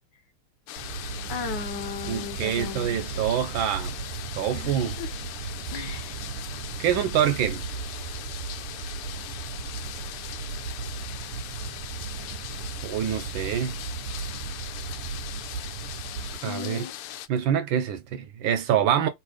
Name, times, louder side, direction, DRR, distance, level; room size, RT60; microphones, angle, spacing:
sound 1, 0.7-17.3, left 12 dB, 85° left, 1.5 m, -40 dB
sound 2, 0.8-16.4, right 6 dB, 90° right, 1.6 m, -36 dB
voice 1, 1.3-3.0 4.5-5.1 5.7-6.2 16.5-16.9, left 7 dB, 65° left, 1.2 m, -36 dB
voice 2, 2.1-4.0 4.4-4.9 6.8-7.6 12.8-13.7 16.4-16.9 17.3-19.1, right 9 dB, 70° right, 1.3 m, -25 dB
3.9 x 2.8 x 4.8 m
omnidirectional pair, 2.4 m